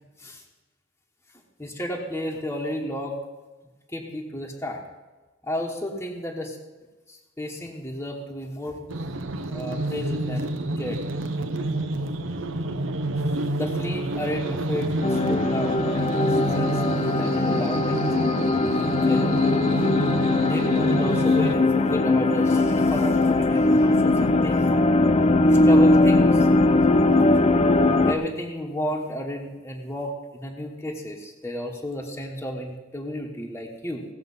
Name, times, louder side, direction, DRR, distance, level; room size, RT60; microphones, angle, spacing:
voice 1, 1.6-3.2 3.9-4.8 5.4-6.6 7.1-8.8 9.5-11.0 13.5-16.2 16.5-19.5 20.5-24.7 25.5-26.5 27.0-27.2 28.0-34.0, equal, 15° left, -1 dB, 1.2 m, -32 dB
sound 1, 8.9-21.6, right 1 dB, 80° right, 0.9 m, -28 dB
sound 2, 15.0-28.1, left 2 dB, 35° left, 0.5 m, -20 dB
17.0 x 7.2 x 5.5 m, 1.2 s
head